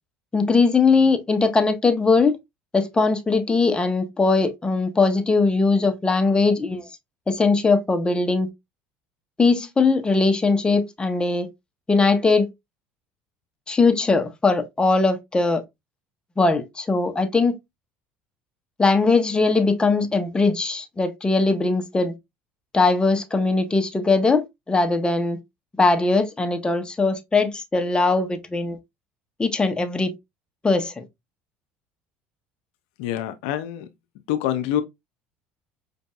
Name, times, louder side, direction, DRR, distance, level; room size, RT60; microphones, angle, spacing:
voice 1, 0.3-2.4 2.7-6.9 7.3-8.5 9.4-11.5 11.9-12.5 13.7-15.6 16.4-17.6 18.8-22.1 22.7-25.4 25.8-28.8 29.4-30.1 30.6-31.0, left 3 dB, 15° left, 0.9 m, -20 dB
voice 2, 33.0-33.9 34.3-34.8, left 12 dB, 80° left, 0.5 m, -25 dB
5.2 x 2.6 x 2.3 m
hypercardioid pair, 80°, 5 cm